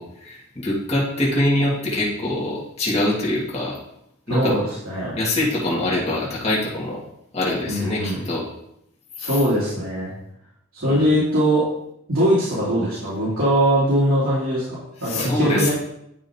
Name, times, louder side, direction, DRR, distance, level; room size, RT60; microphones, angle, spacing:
voice 1, 0.0-3.8 4.3-4.5 5.2-7.0 7.3-8.5 9.2-9.4 10.8-11.0 15.0-15.7, left 1 dB, 30° left, -5 dB, 1.9 m, -24 dB
voice 2, 4.3-5.1 7.7-8.2 9.2-10.1 10.7-11.7 12.1-15.7, equal, 85° right, -10 dB, 2.7 m, -21 dB
10.5 x 5.0 x 2.8 m, 0.77 s
head